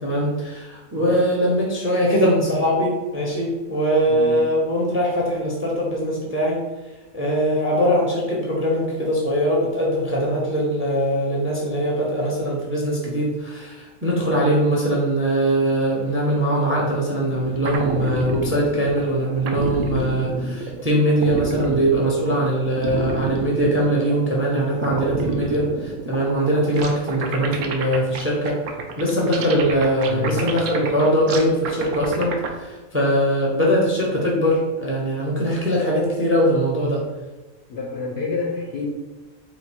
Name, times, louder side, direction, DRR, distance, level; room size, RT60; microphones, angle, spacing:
voice 1, 0.0-6.6 7.1-28.6 29.0-37.0, equal, 15° right, -3 dB, 0.5 m, -21 dB
voice 2, 4.1-4.5 30.1-30.5 37.7-38.9, left 4 dB, 60° left, -1 dB, 0.7 m, -28 dB
sound 1, 17.3-32.5, right 4 dB, 85° right, 1.1 m, -29 dB
4.0 x 2.6 x 4.3 m, 1.2 s
omnidirectional pair, 1.5 m